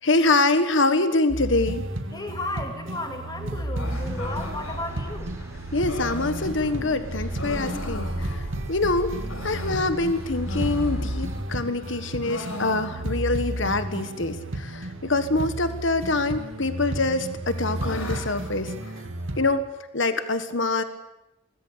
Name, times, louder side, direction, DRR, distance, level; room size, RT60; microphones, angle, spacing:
voice 1, 0.0-1.8 5.7-9.1 9.4-18.7 19.4-19.7 19.9-20.8, left 2 dB, 60° left, 11 dB, 1.4 m, -25 dB
sound 1, 1.3-19.4, right 1 dB, 65° right, 2.3 m, -33 dB
voice 2, 2.1-5.3, left 2 dB, 20° left, 4 dB, 2.5 m, -34 dB
sound 2, 3.7-8.7 9.1-11.5 11.8-13.3 13.6-13.7 13.9-14.0 14.7-15.1 16.1-16.7 17.1-19.5, left 1 dB, 80° left, 4.7 m, -39 dB
sound 3, 3.8-11.4, equal, 10° right, 5.5 m, -38 dB
24.0 x 19.5 x 8.4 m, 0.93 s
head